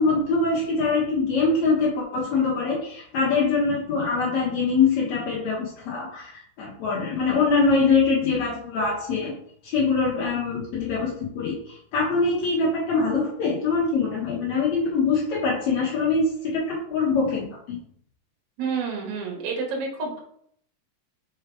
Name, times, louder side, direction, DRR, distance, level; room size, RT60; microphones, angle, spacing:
voice 1, 0.0-9.3 9.6-17.8, left 4 dB, 70° left, -5 dB, 1.7 m, -23 dB
voice 2, 18.6-20.2, right 5 dB, 55° right, 0 dB, 2.5 m, -29 dB
5.5 x 4.8 x 4.7 m, 0.68 s
omnidirectional pair, 4.7 m